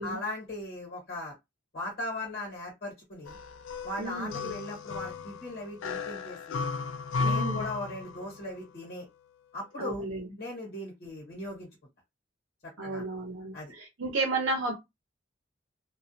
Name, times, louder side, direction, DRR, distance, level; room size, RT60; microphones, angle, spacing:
voice 1, 0.0-1.3 1.7-3.4 3.8-6.6 7.2-9.1 9.5-10.0 10.4-11.7 12.6-13.1 13.5-13.7, left 1 dB, 50° left, 1.2 m, -38 dB
sound 1, 3.3-8.5, left 4 dB, 80° left, 0.4 m, -34 dB
voice 2, 4.0-4.6 7.2-7.6 9.8-10.3 12.8-14.7, right 2 dB, 85° right, 0.7 m, -33 dB
2.3 x 2.1 x 2.7 m
head